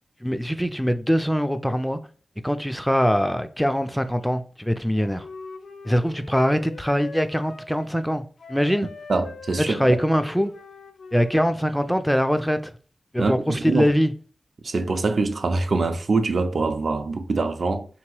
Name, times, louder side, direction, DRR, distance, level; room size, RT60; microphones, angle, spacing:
voice 1, 0.2-2.0 2.4-5.3 5.8-8.9 9.7-10.5 11.1-12.7 13.1-14.1, equal, ahead, 0.3 m, -23 dB
Wind instrument woodwind instrument, 4.9-7.9 8.4-11.9, left 4 dB, 70° left, 0.6 m, -42 dB
voice 2, 9.1-10.0 13.2-13.9 14.6-17.9, right 3 dB, 60° right, 0.5 m, -24 dB
3.5 x 2.9 x 4.6 m
wide cardioid pair, 140°, 0 cm